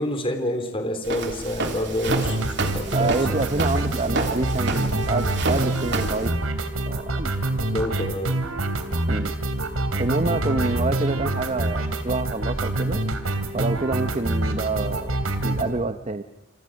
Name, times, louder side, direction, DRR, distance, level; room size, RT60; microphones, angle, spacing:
voice 1, 0.0-3.4 7.7-8.6, left 1 dB, 25° left, 7 dB, 3.5 m, -28 dB
Walk footsteps, 1.0-6.3, right 3 dB, 55° right, 3.1 m, -30 dB
sound 1, 2.1-15.6, right 1 dB, 85° right, 3.2 m, -26 dB
voice 2, 2.9-6.3 6.9-7.3 9.1-9.3 10.0-13.0 13.5-15.1 15.4-16.2, right 3 dB, 30° right, 9 dB, 0.8 m, -27 dB
28.0 x 27.5 x 6.4 m, 0.91 s
head